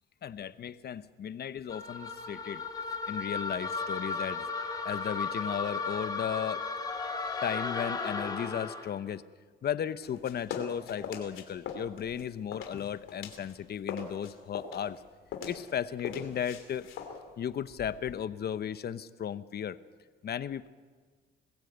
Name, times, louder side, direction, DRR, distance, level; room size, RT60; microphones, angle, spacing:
voice 1, 0.2-2.6 3.1-4.5 4.8-6.6 7.4-9.2 9.6-15.0 15.5-16.9 17.4-19.8 20.2-20.7, left 9 dB, 55° left, 14 dB, 0.9 m, -35 dB
sound 1, 1.7-9.0, left 4 dB, 20° left, 2.2 m, -35 dB
sound 2, 10.0-13.5 13.8-18.3, left 6 dB, 90° left, 2.8 m, -42 dB
21.5 x 15.5 x 8.1 m, 1.5 s
cardioid pair, 90°, 20 cm